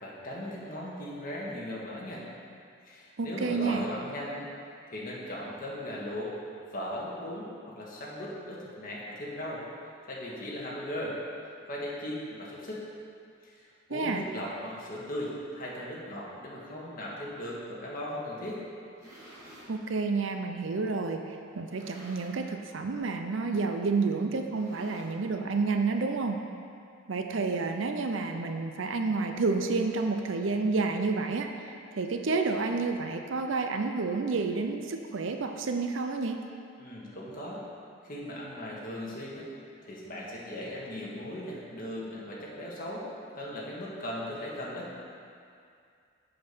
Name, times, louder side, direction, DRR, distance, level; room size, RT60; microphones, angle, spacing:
voice 1, 0.0-2.2 2.8-4.5 4.9-6.3 6.7-9.6 10.1-11.2 11.7-12.8 13.4-18.6 36.8-37.6 38.0-39.5 39.8-43.1 43.3-44.9, left 1 dB, 40° left, -5 dB, 1.7 m, -38 dB
voice 2, 3.2-3.9 13.9-14.2 19.7-26.4 27.1-36.4, right 4 dB, 65° right, 5 dB, 0.6 m, -30 dB
sound 1, 18.8-19.7 20.5-20.6 21.5-22.5 22.8-23.1 23.4-23.5 24.4-25.4, equal, 15° right, 2.0 m, -52 dB
7.6 x 6.8 x 5.5 m, 2.4 s
head